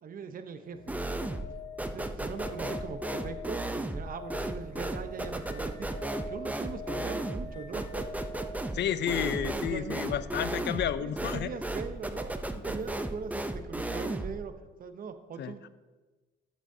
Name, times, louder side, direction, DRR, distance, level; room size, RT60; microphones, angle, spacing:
voice 1, 0.0-0.9 1.3-1.4 1.8-8.2 8.8-10.0 11.0-14.5 14.8-15.7, right 6 dB, 45° right, 9 dB, 0.8 m, -41 dB
sound 1, 0.6-10.5 12.8-12.9, left 2 dB, 90° left, 1.9 m, -46 dB
sound 2, 0.9-1.5 1.8-14.4, right 1 dB, 5° right, 0.5 m, -35 dB
voice 2, 8.7-11.5 15.4-15.5, left 10 dB, 60° left, 14 dB, 0.5 m, -31 dB
13.0 x 8.0 x 2.7 m, 1.3 s
cardioid pair, 90°, 20 cm